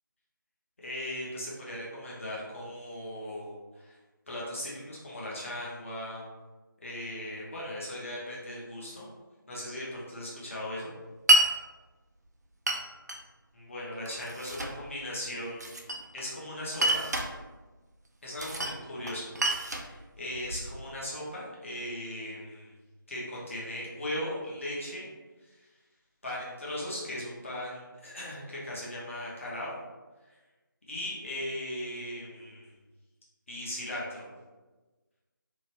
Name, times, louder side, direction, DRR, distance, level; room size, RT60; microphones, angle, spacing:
voice 1, 0.8-4.0 4.3-6.2 6.8-9.1 9.5-10.9 13.5-15.6 16.1-17.1 18.2-22.7 23.1-25.1 25.4-25.7 26.2-29.7 30.9-32.7 33.5-34.3, left 1 dB, 35° left, -6 dB, 0.9 m, -38 dB
Glass, 11.3-11.5 12.7-13.2 14.0-14.8 15.6-16.3 16.7-17.3 18.4-18.8 19.1-20.7, right 2 dB, 50° right, 0.4 m, -27 dB
2.9 x 2.4 x 2.9 m, 1.2 s
figure-of-eight pair, 160°, 12 cm